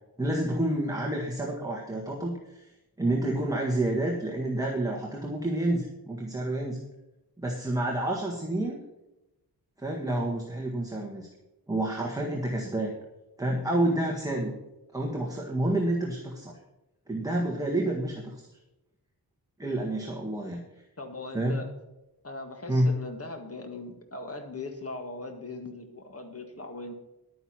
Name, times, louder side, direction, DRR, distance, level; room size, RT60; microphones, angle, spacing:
voice 1, 0.2-2.7 3.0-6.8 7.4-8.8 9.8-11.3 11.7-12.9 13.4-14.5 14.9-16.5 17.1-18.4 19.6-20.6 21.3-21.6 22.7-23.0, right 1 dB, 10° right, -1 dB, 1.7 m, -29 dB
voice 2, 21.0-21.7 22.2-26.9, left 2 dB, 40° left, 4 dB, 1.9 m, -39 dB
11.5 x 9.5 x 5.9 m, 0.94 s
wide cardioid pair, 140°, 38 cm